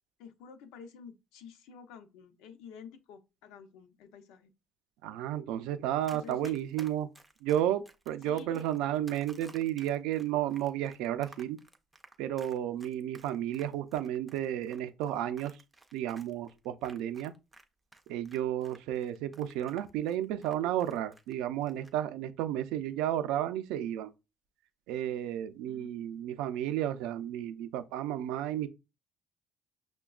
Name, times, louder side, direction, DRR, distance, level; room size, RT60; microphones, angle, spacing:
voice 1, 0.2-4.5 6.1-6.6 8.2-8.6 25.7-25.9, left 6 dB, 85° left, 0.6 m, -50 dB
voice 2, 5.0-7.1 7.4-11.6 12.2-15.6 15.9-17.3 18.1-24.1 24.9-28.7, right 11 dB, 85° right, 0.4 m, -32 dB
Run, 6.0-17.6 17.9-21.3 21.6-21.9, right 2 dB, 5° right, 0.3 m, -55 dB
5.8 x 2.1 x 2.3 m
cardioid pair, 175°, 0 cm